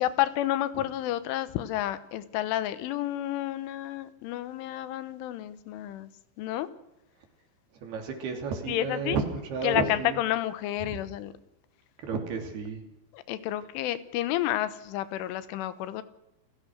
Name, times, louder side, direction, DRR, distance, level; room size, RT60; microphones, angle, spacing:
voice 1, 0.0-6.1 6.4-6.7 8.7-9.2 9.6-11.3 13.1-16.0, left 13 dB, 85° left, 14 dB, 3.6 m, -30 dB
voice 2, 7.8-10.2 10.8-11.0 12.0-12.8, right 5 dB, 60° right, 5 dB, 4.7 m, -32 dB
29.0 x 16.0 x 6.3 m, 0.88 s
omnidirectional pair, 5.5 m